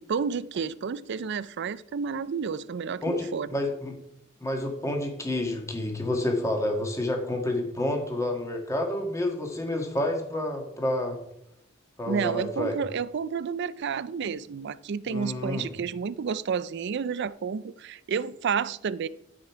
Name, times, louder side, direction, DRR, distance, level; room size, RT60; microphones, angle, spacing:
voice 1, 0.0-3.5 12.1-19.1, right 6 dB, 60° right, 0.4 m, -30 dB
voice 2, 3.0-3.9 4.4-11.2 12.0-12.7 15.1-15.6, left 1 dB, 15° left, 1.5 m, -29 dB
13.0 x 5.2 x 4.6 m
head